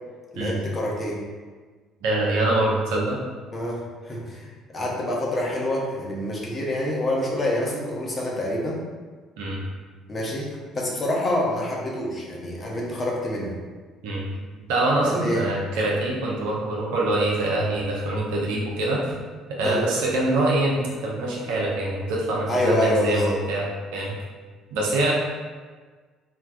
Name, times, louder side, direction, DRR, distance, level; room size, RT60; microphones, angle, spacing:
voice 1, 0.3-1.2 3.5-8.8 10.1-13.5 15.0-15.5 19.6-19.8 22.5-23.4, left 1 dB, 35° left, -3 dB, 0.7 m, -27 dB
voice 2, 2.0-3.2 9.4-9.6 14.0-14.3 14.7-19.0 19.6-23.7 23.9-24.1 24.7-25.1, right 2 dB, 70° right, -3 dB, 0.6 m, -24 dB
3.4 x 2.2 x 2.3 m, 1.4 s
hypercardioid pair, 55°, 0 cm